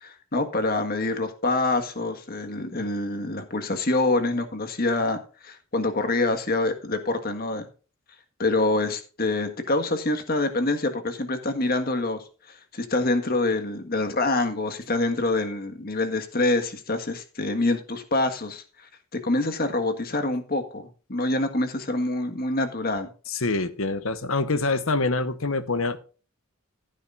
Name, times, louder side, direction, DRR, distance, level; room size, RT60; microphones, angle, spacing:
voice 1, 0.0-7.7 8.4-18.9 19.2-23.1, left 2 dB, 45° left, 7 dB, 1.6 m, -26 dB
voice 2, 23.3-26.0, left 3 dB, 70° left, 12 dB, 1.1 m, -25 dB
15.5 x 9.2 x 2.5 m, 0.36 s
head